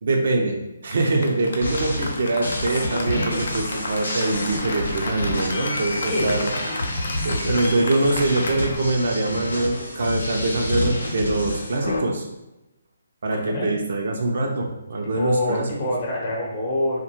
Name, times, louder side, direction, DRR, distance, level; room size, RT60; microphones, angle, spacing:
voice 1, 0.0-6.6 7.2-12.3 13.2-15.9, right 2 dB, 60° right, 1 dB, 0.4 m, -24 dB
Applause, 0.9-8.8, left 2 dB, 65° left, 0.4 m, -32 dB
sound 1, 1.6-12.0, left 1 dB, 90° left, 0.8 m, -29 dB
voice 2, 6.0-6.5 13.3-13.7 15.1-17.0, left 1 dB, 40° left, -3 dB, 0.7 m, -25 dB
2.1 x 2.0 x 2.8 m, 0.96 s
figure-of-eight pair, 145°, 0 cm